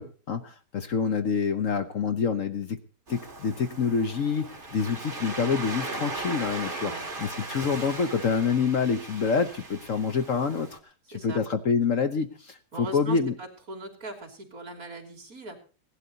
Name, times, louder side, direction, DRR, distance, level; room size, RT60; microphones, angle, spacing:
voice 1, 0.0-2.8 3.1-6.9 7.5-10.8 11.2-13.3, left 5 dB, 55° left, 9 dB, 1.2 m, -27 dB
Waves surf, 3.1-10.8, right 3 dB, 30° right, 2.4 m, -38 dB
voice 2, 11.1-11.4 12.7-15.6, right 2 dB, 55° right, 2 dB, 3.5 m, -40 dB
17.5 x 11.5 x 4.1 m, 0.36 s
omnidirectional pair, 1.8 m